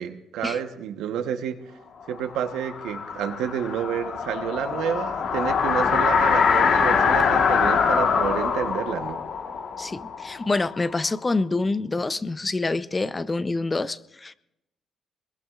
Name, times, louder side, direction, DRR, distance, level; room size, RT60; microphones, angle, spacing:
voice 1, 0.0-1.6 2.1-9.2, right 8 dB, 90° right, 1.1 m, -29 dB
sound 1, 2.2-11.0, left 6 dB, 65° left, 1.4 m, -23 dB
voice 2, 9.8-14.3, left 3 dB, 25° left, 0.6 m, -26 dB
22.5 x 21.0 x 2.5 m
cardioid pair, 90°, 0 cm